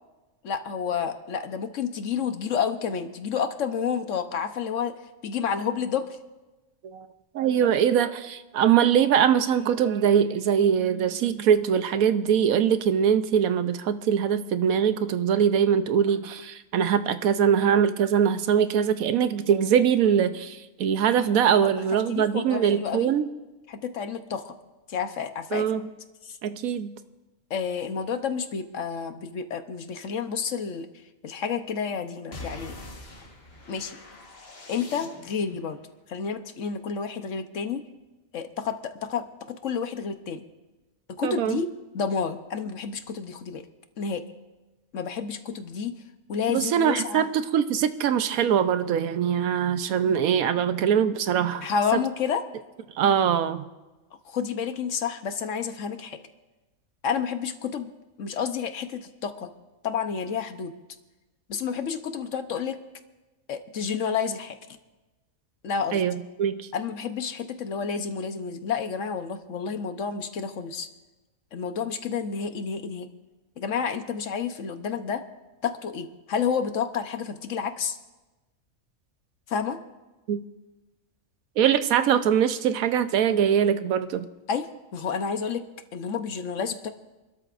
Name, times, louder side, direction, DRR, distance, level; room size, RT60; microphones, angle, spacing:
voice 1, 0.4-6.2 21.6-23.1 23.7-24.5 24.9-25.7 26.2-26.4 27.5-30.9 31.2-32.8 33.7-34.0 34.7-35.8 36.1-37.8 38.3-40.4 41.1-43.6 44.0-44.2 44.9-46.0 46.3-47.3 51.6-52.4 54.2-56.2 57.0-57.9 58.2-59.5 59.8-60.7 61.5-62.8 63.5-64.6 65.6-66.0 66.7-70.9 71.5-73.1 73.6-75.2 75.6-78.0 79.5-79.8 84.5-85.6 85.9-86.9, left 6 dB, 65° left, 8 dB, 1.2 m, -30 dB
voice 2, 7.3-23.3 25.5-25.8 26.4-26.9 41.2-41.6 46.5-51.7 53.0-53.6 65.9-66.7 80.3-80.4 81.6-84.3, right 8 dB, 90° right, 11 dB, 1.2 m, -22 dB
sound 1, 32.3-35.6, left 2 dB, 50° left, 1.7 m, -43 dB
28.0 x 13.0 x 2.5 m, 1.1 s
omnidirectional pair, 1.4 m